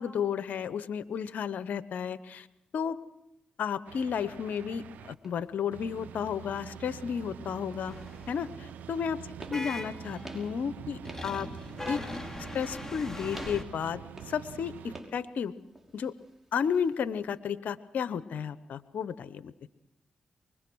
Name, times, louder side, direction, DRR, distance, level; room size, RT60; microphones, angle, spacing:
voice 1, 0.0-2.5 2.7-3.0 3.6-7.9 8.3-9.2 9.5-11.5 11.9-12.0 12.5-14.0 14.3-15.5 15.9-16.1 16.5-19.5, left 7 dB, 75° left, 14 dB, 0.9 m, -32 dB
sound 1, 3.9-5.1 5.7-15.0, right 9 dB, 85° right, 0.7 m, -45 dB
sound 2, 4.8-17.4, right 1 dB, 10° right, 5.6 m, -52 dB
sound 3, 7.9-8.6 9.5-10.5 11.0-13.6, left 2 dB, 15° left, 2.8 m, -40 dB
24.0 x 21.0 x 6.3 m, 0.87 s
supercardioid pair, 50°, 3 cm